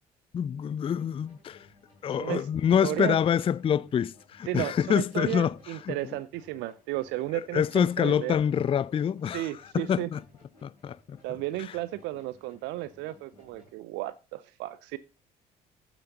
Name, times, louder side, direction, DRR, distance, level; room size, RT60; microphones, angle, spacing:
voice 1, 0.3-1.7 2.0-6.0 7.5-9.5 9.7-10.2 10.6-11.2 11.6-11.8, left 8 dB, 30° left, 0.4 m, -26 dB
sound 1, 0.9-13.7, left 3 dB, 90° left, 3.1 m, -59 dB
voice 2, 2.2-2.5 2.8-3.2 4.5-8.4 9.3-10.1 11.2-15.0, right 15 dB, 65° right, 0.5 m, -33 dB
9.2 x 9.0 x 3.9 m
figure-of-eight pair, 50°, 20 cm